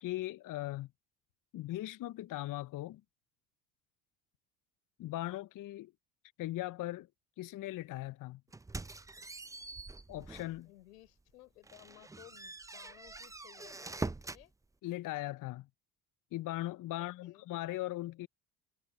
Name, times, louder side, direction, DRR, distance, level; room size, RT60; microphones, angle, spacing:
voice 1, 0.0-0.9 1.5-3.0 5.0-5.9 6.4-7.1 7.4-8.4 10.1-10.7 14.8-15.7 16.3-18.3, left 16 dB, 45° left, 0.6 m, -39 dB
sound 1, 8.5-10.6 11.1-11.2 11.6-14.5, right 3 dB, 10° right, 0.5 m, -44 dB
voice 2, 10.6-14.5 16.9-17.5, left 17 dB, 90° left, 4.3 m, -58 dB
hypercardioid pair, 65°, 45 cm